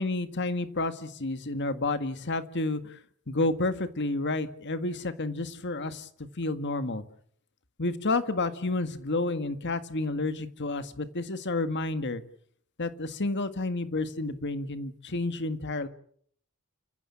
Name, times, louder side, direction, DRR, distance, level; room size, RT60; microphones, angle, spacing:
voice 1, 0.0-2.9 3.3-6.1 6.4-7.0 7.8-12.2 12.8-15.9, left 2 dB, 55° left, 11 dB, 1.8 m, -30 dB
29.0 x 16.0 x 8.6 m, 0.63 s
head